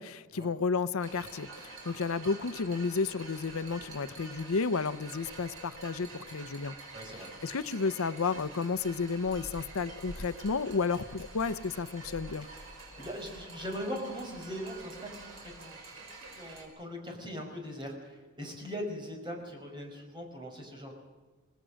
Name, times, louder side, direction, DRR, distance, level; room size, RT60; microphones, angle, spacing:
voice 1, 0.0-6.7 7.4-12.5, left 4 dB, 85° left, 15 dB, 0.7 m, -32 dB
sound 1, 1.0-16.7, right 2 dB, 70° right, 5.5 m, -47 dB
voice 2, 6.9-7.3 12.4-20.9, equal, 20° right, 2 dB, 5.0 m, -41 dB
26.0 x 18.5 x 6.3 m, 1.3 s
head